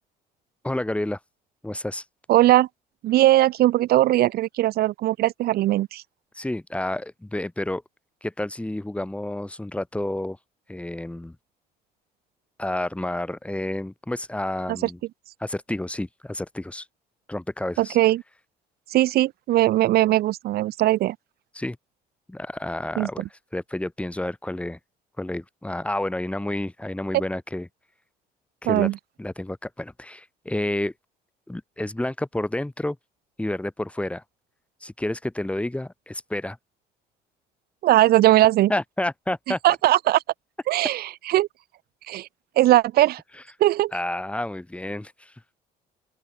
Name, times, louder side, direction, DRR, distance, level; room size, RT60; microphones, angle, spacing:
voice 1, 0.6-1.2 1.6-2.0 6.3-7.8 8.2-10.4 10.7-11.4 12.6-15.0 15.4-16.9 17.3-18.0 21.5-21.8 22.3-24.8 25.2-27.7 28.6-28.9 29.2-30.9 31.5-33.0 33.4-34.2 34.8-36.6 38.7-39.6 43.9-45.3, left 1 dB, 5° left, 4.6 m, -30 dB
voice 2, 2.3-2.7 3.0-6.0 14.7-14.8 17.8-18.2 18.9-21.1 23.0-23.1 28.7-28.9 37.8-38.7 39.6-40.2 40.7-41.5 42.1-42.3 42.6-43.2 43.6-43.9, right 15 dB, 65° right, 0.7 m, -19 dB
open air
cardioid pair, 110°, 17 cm